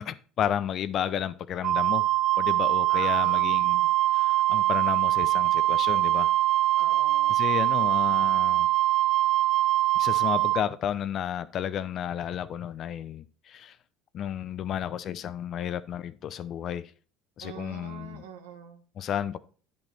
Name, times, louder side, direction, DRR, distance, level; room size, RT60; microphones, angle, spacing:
voice 1, 0.0-2.0 2.4-6.3 7.3-8.7 9.9-13.8 14.1-16.9 17.4-18.2 19.0-19.4, left 9 dB, 50° left, 0.6 m, -32 dB
Wind instrument woodwind instrument, 1.6-10.6, right 16 dB, 55° right, 0.4 m, -23 dB
voice 2, 2.9-3.5 6.8-7.4 17.4-18.8, right 7 dB, 80° right, 1.3 m, -43 dB
10.5 x 5.3 x 4.3 m
hypercardioid pair, 70°, 0 cm